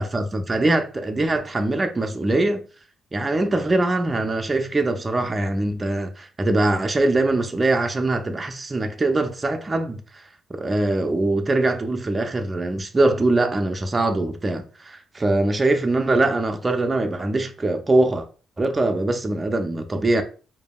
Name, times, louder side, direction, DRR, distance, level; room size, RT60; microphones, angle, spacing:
voice 1, 0.0-2.6 3.1-10.2 10.5-18.3 18.6-20.2, right 2 dB, 25° right, 0.6 m, -22 dB
5.0 x 2.7 x 2.3 m
cardioid pair, 90°, 0 cm